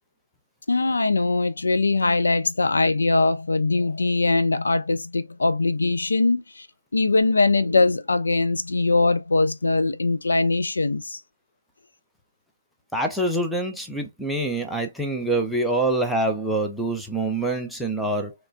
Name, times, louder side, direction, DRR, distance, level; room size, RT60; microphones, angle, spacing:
voice 1, 0.7-6.7 6.9-11.2, left 3 dB, 65° left, 0.4 m, -21 dB
voice 2, 12.9-18.3, right 2 dB, ahead, 0.4 m, -25 dB
3.1 x 2.9 x 2.5 m
figure-of-eight pair, 145°, 0 cm